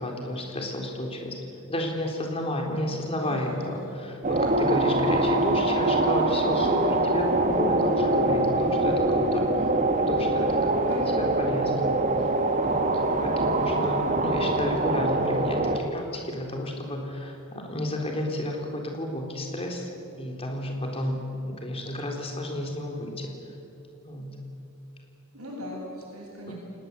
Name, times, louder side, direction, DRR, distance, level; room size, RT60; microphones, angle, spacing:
voice 1, 0.0-1.4 1.7-9.7 10.0-11.9 12.6-19.9 20.2-23.3 24.0-24.4 26.5-26.6, left 1 dB, 25° left, 1 dB, 3.8 m, -32 dB
voice 2, 3.2-3.8 10.9-11.1 25.3-26.5, equal, 75° right, -3 dB, 7.5 m, -39 dB
sound 1, 4.2-15.8, right 2 dB, 35° right, 1.5 m, -24 dB
28.5 x 19.0 x 8.3 m, 2.9 s
head